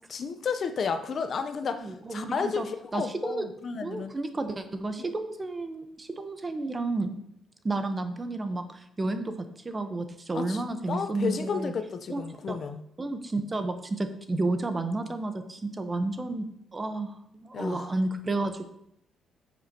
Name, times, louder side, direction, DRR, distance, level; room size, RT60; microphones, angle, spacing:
voice 1, 0.1-4.2 10.3-10.6 10.9-12.8 17.5-17.9, left 5 dB, 50° left, 9 dB, 0.7 m, -32 dB
voice 2, 1.8-2.7 2.9-3.5 3.8-7.1 7.6-11.7 12.1-12.2 12.5-12.6 13.0-16.5 16.7-18.7, right 2 dB, 25° right, 8 dB, 0.9 m, -31 dB
10.5 x 7.5 x 2.9 m, 0.76 s
cardioid pair, 90°, 0 cm